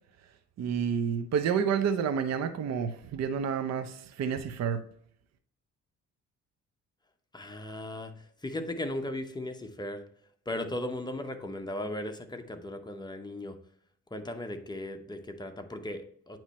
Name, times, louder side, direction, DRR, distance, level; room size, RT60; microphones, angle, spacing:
voice 1, 0.6-4.8, right 7 dB, 60° right, 8 dB, 0.7 m, -29 dB
voice 2, 7.3-8.1 8.4-10.0 10.5-13.6 14.1-16.4, left 1 dB, 15° left, 6 dB, 0.9 m, -37 dB
8.9 x 3.1 x 4.2 m, 0.63 s
cardioid pair, 90°, 30 cm